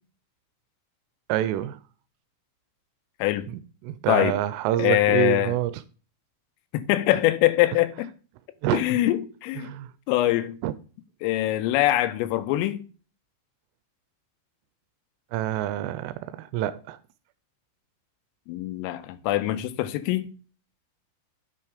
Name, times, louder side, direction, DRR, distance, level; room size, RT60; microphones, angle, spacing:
voice 1, 1.3-1.8 3.5-5.7 8.6-8.8 9.6-9.9 10.6-10.7 15.3-17.0, right 13 dB, 85° right, 3.0 m, -27 dB
voice 2, 4.1-4.4 4.8-5.5 6.7-8.1 8.7-9.7 10.1-10.6 11.2-12.8 18.5-20.3, left 15 dB, 90° left, 3.3 m, -23 dB
9.4 x 5.6 x 4.9 m
omnidirectional pair, 5.9 m